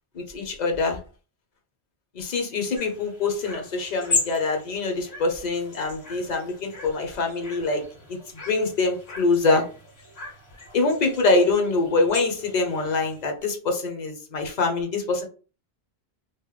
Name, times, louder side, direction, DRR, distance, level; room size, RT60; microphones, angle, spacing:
voice 1, 0.1-1.0 2.1-8.2 8.5-9.7 10.7-15.3, left 3 dB, 45° left, 4 dB, 0.7 m, -24 dB
sound 1, 2.7-13.3, left 3 dB, 65° left, 1.7 m, -36 dB
3.1 x 2.1 x 3.0 m, 0.36 s
omnidirectional pair, 1.1 m